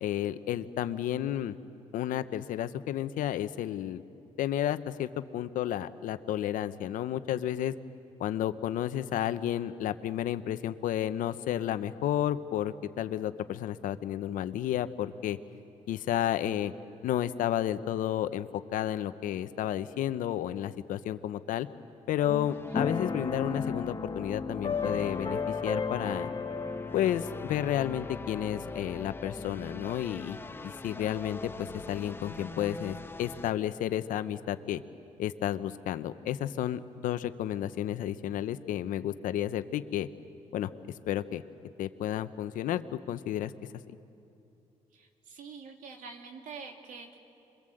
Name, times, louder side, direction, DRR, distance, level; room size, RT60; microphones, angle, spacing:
voice 1, 0.0-1.6 1.9-4.0 4.4-7.7 8.2-15.4 15.9-16.7 17.0-21.7 22.1-26.3 26.9-30.4 30.6-34.8 35.2-40.1 40.5-40.7 41.1-41.4 41.8-43.5, left 11 dB, 85° left, 12 dB, 0.9 m, -32 dB
sound 1, 22.2-33.5, left 2 dB, 15° left, 0.8 m, -42 dB
Keyboard (musical), 22.7-30.2, left 5 dB, 35° left, 1.3 m, -35 dB
voice 2, 44.9-47.2, right 5 dB, 75° right, 3 dB, 2.7 m, -46 dB
27.0 x 23.0 x 7.8 m, 2.9 s
cardioid pair, 80°, 13 cm